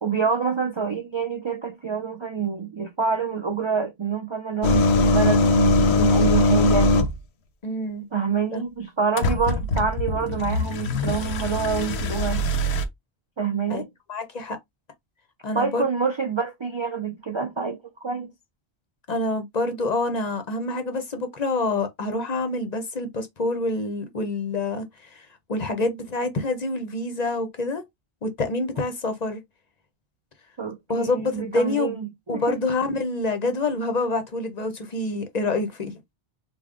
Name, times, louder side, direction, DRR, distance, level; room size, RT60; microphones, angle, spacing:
voice 1, 0.0-6.9 8.1-12.5 13.4-13.9 15.5-18.3 30.6-32.6, right 5 dB, 45° right, 0.4 m, -27 dB
sound 1, 4.6-7.2 9.2-12.8, left 2 dB, 90° left, 0.9 m, -21 dB
voice 2, 7.6-8.1 8.5-8.6 13.7-13.8 14.1-14.6 15.4-15.8 19.1-27.8 28.2-29.4 30.9-32.0 32.3-35.9, left 2 dB, 45° left, 0.7 m, -27 dB
3.5 x 2.1 x 3.6 m
omnidirectional pair, 1.1 m